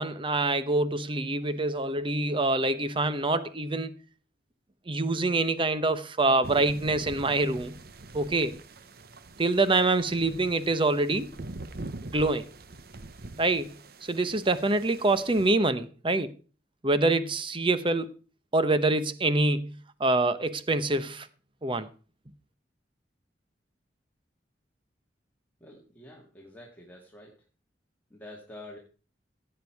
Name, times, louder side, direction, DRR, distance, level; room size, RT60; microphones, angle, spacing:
voice 1, 0.0-3.9 4.9-7.7 8.1-8.6 9.4-11.3 12.1-12.5 13.4-16.3 16.8-18.1 18.5-21.3 21.6-21.9, right 2 dB, 30° right, 1.0 m, -26 dB
sound 1, 6.4-15.5, right 2 dB, 60° right, 0.9 m, -44 dB
voice 2, 25.6-27.4 28.1-28.8, left 1 dB, 10° left, 2.1 m, -47 dB
16.0 x 9.0 x 4.7 m
head